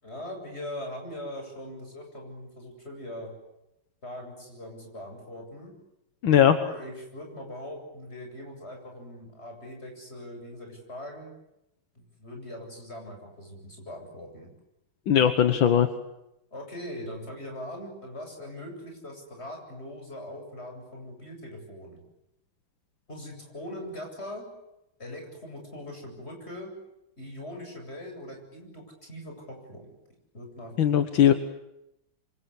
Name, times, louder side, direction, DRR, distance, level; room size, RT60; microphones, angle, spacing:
voice 1, 0.0-3.3 4.0-5.7 6.5-11.3 12.0-14.5 16.5-22.0 23.1-24.5 25.0-26.7 27.2-29.9 30.3-30.7, left 1 dB, 30° left, 2 dB, 8.3 m, -41 dB
voice 2, 6.2-6.6 15.1-15.9 30.8-31.3, left 9 dB, 75° left, 9 dB, 2.0 m, -19 dB
28.0 x 25.0 x 8.5 m, 0.88 s
omnidirectional pair, 2.1 m